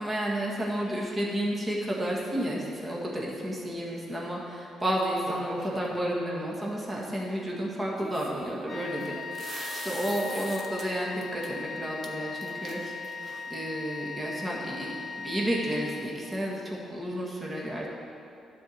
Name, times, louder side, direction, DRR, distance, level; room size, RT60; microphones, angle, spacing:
voice 1, 0.0-13.3 13.5-17.9, equal, 20° right, -4 dB, 1.8 m, -31 dB
sound 1, 5.3-6.0 8.0-10.9 11.2-11.5 12.0-12.1 12.4-13.6, right 2 dB, 40° right, 1.1 m, -42 dB
sound 2, 8.7-16.5, left 5 dB, 30° left, 0.8 m, -39 dB
11.0 x 4.6 x 7.3 m, 2.6 s
cardioid pair, 90°, 0 cm